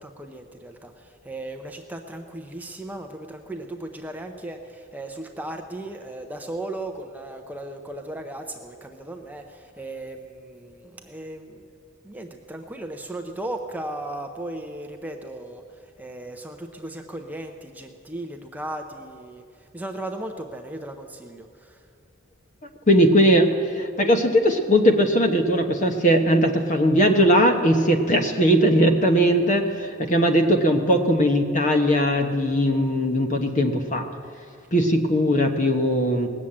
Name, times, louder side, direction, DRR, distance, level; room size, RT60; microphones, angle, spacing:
voice 1, 0.0-11.7 12.0-21.9 36.2-36.3, right 1 dB, 10° right, 4 dB, 0.6 m, -36 dB
voice 2, 22.9-34.1 34.7-36.3, equal, 40° left, 5 dB, 1.1 m, -19 dB
18.5 x 7.4 x 8.7 m, 2.3 s
head